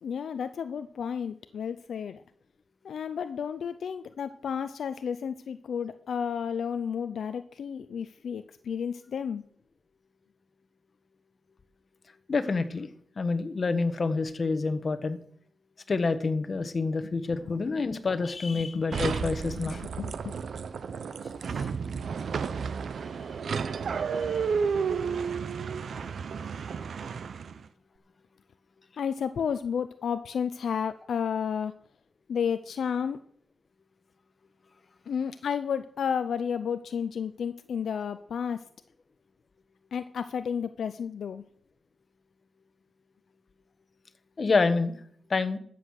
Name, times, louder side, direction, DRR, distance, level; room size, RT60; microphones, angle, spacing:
voice 1, 0.0-2.2 2.8-9.4 18.7-19.1 19.8-20.3 29.0-31.7 32.3-33.2 35.1-38.6 39.9-41.4, left 7 dB, 90° left, 11 dB, 0.5 m, -32 dB
voice 2, 12.3-12.9 13.2-15.2 15.9-19.8 21.5-21.7 44.4-44.9 45.3-45.6, left 4 dB, 50° left, 10 dB, 1.2 m, -27 dB
sound 1, 18.9-27.6, right 6 dB, 80° right, 0.7 m, -32 dB
13.0 x 7.7 x 6.5 m, 0.63 s
cardioid pair, 80°, 0 cm